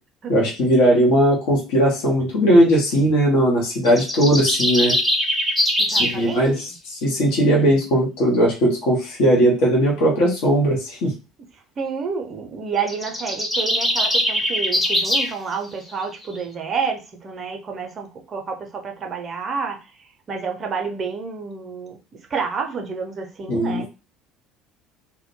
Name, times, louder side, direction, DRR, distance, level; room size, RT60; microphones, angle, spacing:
voice 1, 0.3-5.0 6.0-11.1 23.5-23.9, equal, 60° left, -1 dB, 0.7 m, -18 dB
sound 1, 3.9-6.2 12.8-15.3, equal, 10° left, 0.7 m, -21 dB
voice 2, 5.8-6.6 7.6-7.8 11.8-22.0 22.3-23.9, right 5 dB, 35° right, 3 dB, 0.6 m, -29 dB
2.1 x 2.1 x 3.0 m, 0.30 s
figure-of-eight pair, 60°, 0 cm